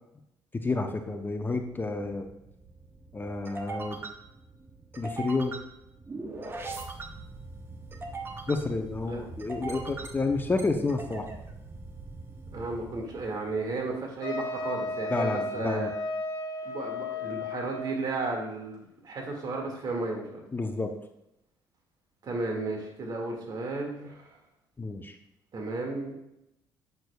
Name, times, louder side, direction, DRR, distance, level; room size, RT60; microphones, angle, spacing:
voice 1, 0.5-2.3 3.1-4.0 5.0-5.6 8.5-11.3 15.1-15.9 20.5-20.9 24.8-25.1, left 3 dB, 25° left, 6 dB, 0.7 m, -30 dB
sound 1, 1.6-13.9, right 3 dB, 25° right, 1.0 m, -42 dB
voice 2, 12.5-15.9 16.6-20.4 22.2-24.4 25.5-26.1, right 3 dB, 55° right, 1 dB, 2.1 m, -34 dB
Wind instrument woodwind instrument, 14.2-18.1, left 2 dB, 55° left, 2.7 m, -34 dB
8.1 x 6.4 x 2.3 m, 0.83 s
supercardioid pair, 70°, 9 cm